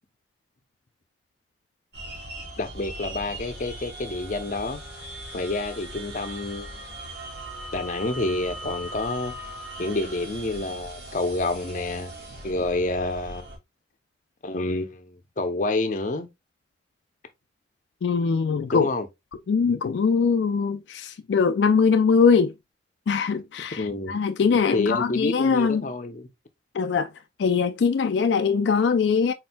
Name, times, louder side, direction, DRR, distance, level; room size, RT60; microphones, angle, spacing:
sound 1, 1.9-13.6, right 1 dB, 75° right, 2.1 m, -39 dB
voice 1, 2.6-4.8 5.3-6.9 7.7-9.3 9.8-12.1 12.4-13.5 14.4-16.3 18.7-19.1 23.7-24.2 24.7-26.3, left 2 dB, 45° left, 0.6 m, -28 dB
voice 2, 18.0-18.9 19.5-22.5 23.1-25.9 26.7-27.1 27.4-29.3, left 5 dB, 80° left, 0.4 m, -22 dB
4.3 x 4.2 x 2.2 m
head